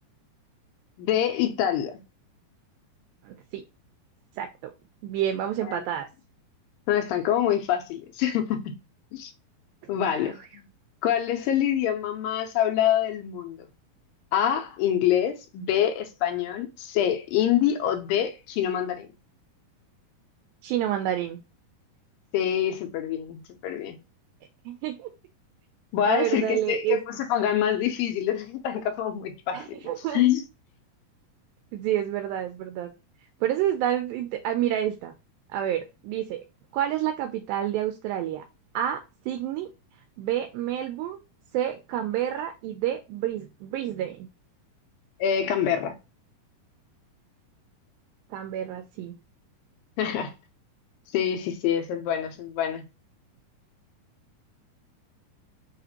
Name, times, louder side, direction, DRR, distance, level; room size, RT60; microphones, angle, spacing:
voice 1, 1.0-2.0 5.6-5.8 6.9-8.7 9.1-9.3 9.9-10.7 11.0-13.7 14.3-19.1 22.3-24.0 25.9-29.8 30.1-30.4 45.2-46.0 50.0-50.3 51.1-52.8, left 10 dB, 80° left, 2.3 m, -26 dB
voice 2, 3.2-3.6 4.4-4.7 5.0-6.1 20.6-21.4 24.7-25.1 26.1-27.0 29.5-30.2 31.7-32.9 33.4-35.1 35.5-36.4 36.7-38.4 38.7-39.7 40.2-41.2 41.5-44.3 48.3-49.1, right 11 dB, 85° right, 2.3 m, -29 dB
5.6 x 2.5 x 2.8 m
omnidirectional pair, 4.2 m